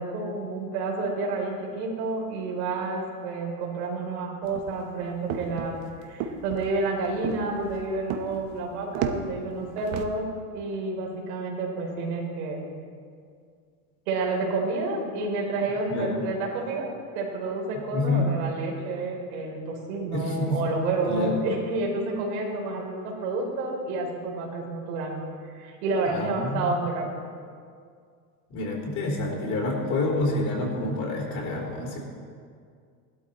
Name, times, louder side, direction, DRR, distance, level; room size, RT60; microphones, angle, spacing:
voice 1, 0.0-5.7 6.1-10.2 10.5-12.6 14.1-16.9 17.1-25.3 25.5-27.2, right 3 dB, 80° right, -1 dB, 3.8 m, -29 dB
sound 1, 4.4-10.1, right 8 dB, 60° right, 1.1 m, -34 dB
voice 2, 15.9-16.2 17.9-18.3 20.1-20.6 21.1-21.4 26.0-26.8 28.5-32.0, left 2 dB, 40° left, -2 dB, 3.5 m, -28 dB
16.5 x 12.5 x 4.2 m, 2.2 s
supercardioid pair, 155°, 45 cm